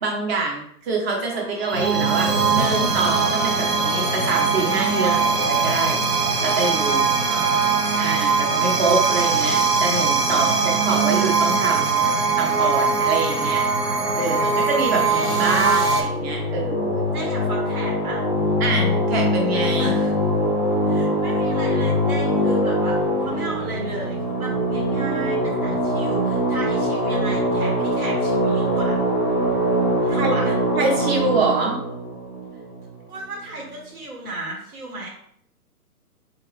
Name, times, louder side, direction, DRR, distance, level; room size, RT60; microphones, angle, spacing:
voice 1, 0.0-5.1 5.6-6.0 6.4-7.1 8.0-12.0 12.4-13.6 14.1-17.1 18.6-19.9 30.2-31.8, right 3 dB, 40° right, -1 dB, 1.2 m, -25 dB
sound 1, 1.3-16.0, right 4 dB, 85° right, 1.0 m, -21 dB
voice 2, 7.2-8.3 10.3-10.8 17.1-18.2 19.8-20.2 20.9-29.1 30.0-30.6 33.1-35.1, right 2 dB, 70° right, -1 dB, 1.5 m, -35 dB
sound 2, 15.1-33.2, equal, 10° left, 0.6 m, -23 dB
3.8 x 2.8 x 3.3 m, 0.67 s
figure-of-eight pair, 130°, 46 cm